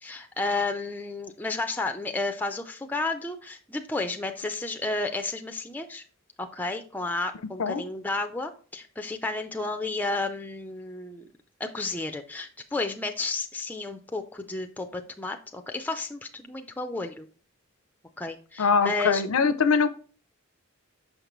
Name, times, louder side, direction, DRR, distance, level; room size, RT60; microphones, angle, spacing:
voice 1, 0.0-6.0 6.4-11.3 11.6-17.3 18.2-19.2, left 3 dB, 10° left, 5 dB, 0.4 m, -32 dB
voice 2, 18.6-19.9, left 5 dB, 85° left, 13 dB, 0.5 m, -22 dB
6.3 x 5.1 x 3.0 m, 0.40 s
head